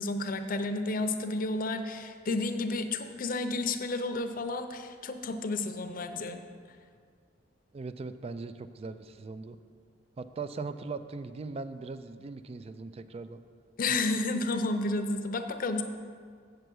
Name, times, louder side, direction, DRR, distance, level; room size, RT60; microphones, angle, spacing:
voice 1, 0.0-6.4 13.8-15.8, left 2 dB, 50° left, 8 dB, 0.6 m, -31 dB
voice 2, 7.7-9.6 10.2-13.4, right 4 dB, 35° right, 12 dB, 0.3 m, -39 dB
7.9 x 6.7 x 6.2 m, 2.1 s
head